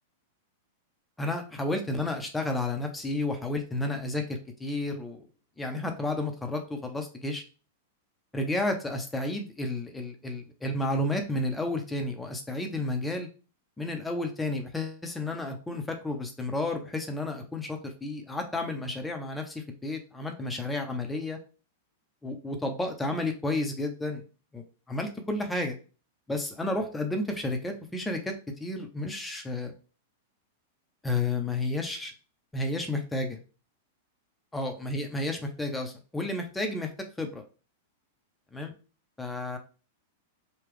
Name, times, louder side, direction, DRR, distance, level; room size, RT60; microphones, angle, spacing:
voice 1, 1.2-5.2 5.6-7.4 8.3-13.3 13.8-21.4 22.2-24.2 24.5-25.8 26.3-28.3 28.6-29.7 31.0-32.1 32.5-33.4 34.5-36.9 37.2-37.4 38.5-38.7 39.2-39.6, left 2 dB, 10° left, 4 dB, 0.8 m, -31 dB
3.6 x 2.4 x 3.3 m, 0.34 s
hypercardioid pair, 105°, 0 cm